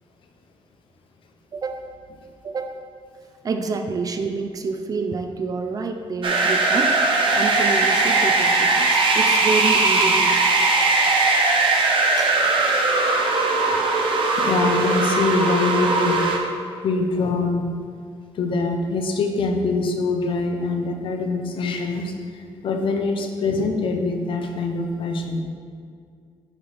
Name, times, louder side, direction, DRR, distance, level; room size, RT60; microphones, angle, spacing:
voice 1, 1.5-1.9 2.4-2.8 3.4-7.0 7.3-10.6 12.2-12.4, right 4 dB, 35° right, 6 dB, 0.4 m, -28 dB
sound 1, 6.2-16.4, right 3 dB, 55° right, 0.8 m, -19 dB
voice 2, 14.2-16.2 16.8-17.7 18.3-25.4, left 3 dB, 55° left, 4 dB, 0.7 m, -24 dB
9.8 x 4.1 x 3.4 m, 2.2 s
cardioid pair, 160°, 10 cm